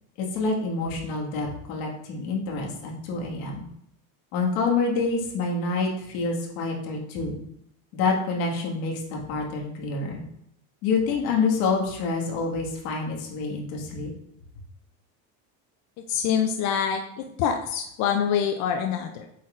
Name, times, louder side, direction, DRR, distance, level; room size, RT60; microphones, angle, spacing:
voice 1, 0.2-3.7 4.3-7.4 7.9-10.2 10.8-14.1, left 4 dB, 65° left, -1 dB, 1.9 m, -27 dB
voice 2, 16.1-19.3, left 8 dB, 40° left, 4 dB, 0.4 m, -25 dB
8.2 x 6.0 x 2.5 m, 0.74 s
cardioid pair, 170°, 45 cm